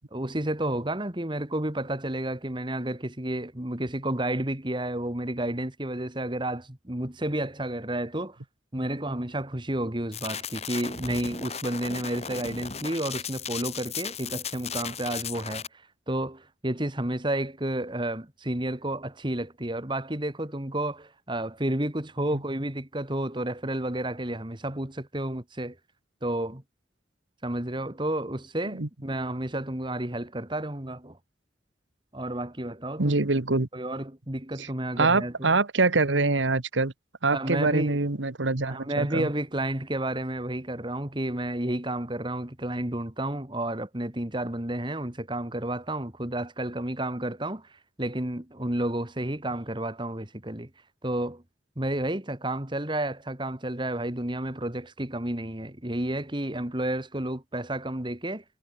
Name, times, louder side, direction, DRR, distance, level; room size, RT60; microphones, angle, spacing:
voice 1, 0.1-8.4 8.7-15.6 16.1-25.8 26.2-26.6 27.4-31.2 32.1-33.1 33.7-35.6 37.3-38.0 38.7-47.7 48.0-50.7 51.0-51.4 51.8-58.4, right 1 dB, 25° right, 2.0 m, -31 dB
sound 1, 10.1-15.7, left 7 dB, 35° left, 3.8 m, -36 dB
voice 2, 33.0-33.7 34.6-34.7 35.0-36.9 37.2-39.3, right 3 dB, 90° right, 1.6 m, -24 dB
head